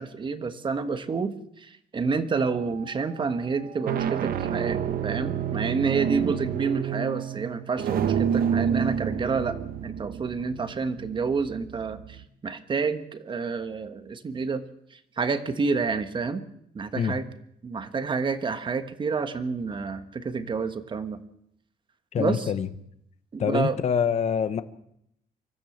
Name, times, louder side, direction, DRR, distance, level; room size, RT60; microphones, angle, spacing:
voice 1, 0.0-9.6 9.8-14.6 14.9-16.4 16.7-17.2 17.6-21.2 22.2-22.5 23.3-23.8, right 5 dB, 30° right, 10 dB, 1.4 m, -29 dB
sound 1, 2.4-2.8 3.6-12.2, right 8 dB, 70° right, 1.3 m, -29 dB
voice 2, 22.1-22.7 23.4-24.6, left 7 dB, 45° left, 12 dB, 1.1 m, -25 dB
25.0 x 14.0 x 8.0 m, 0.75 s
cardioid pair, 155°, 16 cm